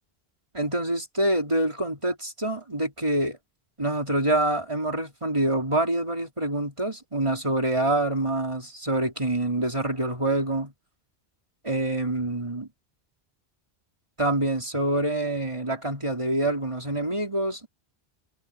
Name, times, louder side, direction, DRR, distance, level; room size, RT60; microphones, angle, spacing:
voice 1, 0.5-3.4 3.8-10.7 11.6-12.7 14.2-17.7, right 1 dB, 25° right, 4.0 m, -26 dB
omnidirectional pair, 1.1 m